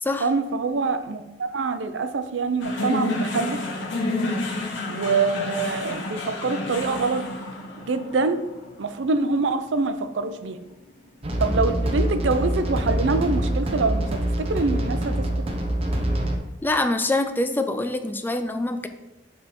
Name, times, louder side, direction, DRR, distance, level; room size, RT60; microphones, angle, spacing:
voice 1, 0.2-3.6 4.9-7.3 7.9-8.4 8.8-10.6 11.4-14.0 14.4-15.1, right 3 dB, 85° right, 10 dB, 0.5 m, -25 dB
sound 1, 2.6-11.0, left 2 dB, 85° left, 1.2 m, -30 dB
sound 2, 11.2-16.4, right 1 dB, 30° right, 0.7 m, -25 dB
voice 2, 16.6-18.9, left 2 dB, 10° left, 8 dB, 0.4 m, -25 dB
7.6 x 3.6 x 4.3 m, 1.0 s
head